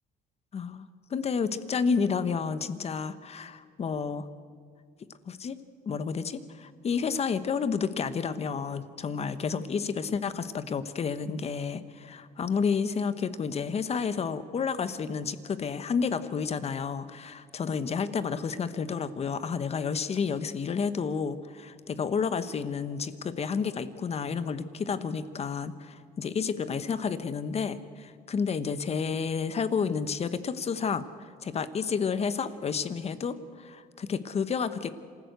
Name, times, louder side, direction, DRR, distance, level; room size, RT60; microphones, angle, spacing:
voice 1, 0.5-4.3 5.3-5.6 5.9-31.1 31.4-34.9, left 6 dB, 40° left, 13 dB, 1.1 m, -30 dB
26.5 x 14.0 x 8.2 m, 2.1 s
cardioid pair, 110°, 17 cm